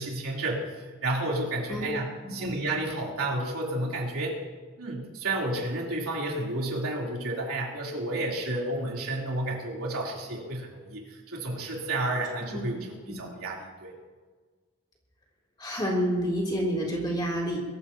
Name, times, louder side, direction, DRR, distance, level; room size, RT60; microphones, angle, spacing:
voice 1, 0.0-4.4 4.8-13.9, right 2 dB, 80° right, -3 dB, 3.6 m, -31 dB
voice 2, 2.2-2.5 12.5-12.8 15.6-17.6, equal, 20° left, -2 dB, 3.2 m, -29 dB
22.5 x 14.5 x 3.0 m, 1.4 s
head